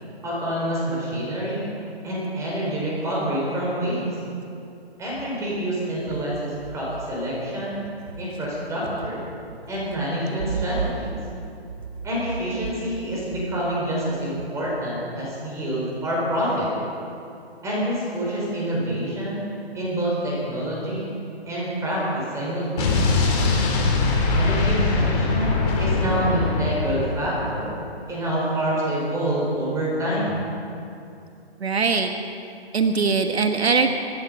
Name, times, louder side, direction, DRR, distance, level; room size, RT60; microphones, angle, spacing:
voice 1, 0.2-1.7 2.0-4.1 5.0-7.8 8.2-9.2 9.7-11.1 12.0-16.7 17.6-19.5 19.7-21.1 21.5-23.3 24.3-27.8 28.1-30.5, right 1 dB, 10° right, -6 dB, 4.7 m, -27 dB
Explosion, 22.8-27.6, left 3 dB, 35° left, 3.5 m, -22 dB
voice 2, 31.6-32.1 32.7-33.9, right 4 dB, 75° right, 6 dB, 1.3 m, -21 dB
25.0 x 10.0 x 5.4 m, 2.6 s
figure-of-eight pair, 145°, 32 cm